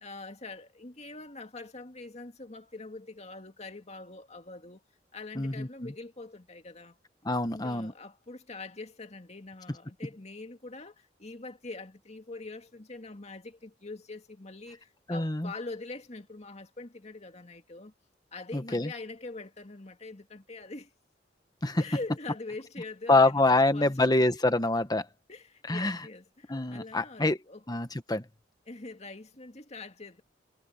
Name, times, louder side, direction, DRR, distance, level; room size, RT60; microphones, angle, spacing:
voice 1, 0.0-4.8 5.1-7.0 7.5-17.9 18.3-20.9 21.8-24.3 25.3-27.6 28.7-30.2, left 3 dB, 35° left, 2.2 m, -44 dB
voice 2, 5.3-5.9 7.2-7.9 15.1-15.5 18.5-18.9 21.6-21.8 23.1-25.1 25.7-26.0 26.5-27.4 27.7-28.2, left 2 dB, 20° left, 1.3 m, -25 dB
head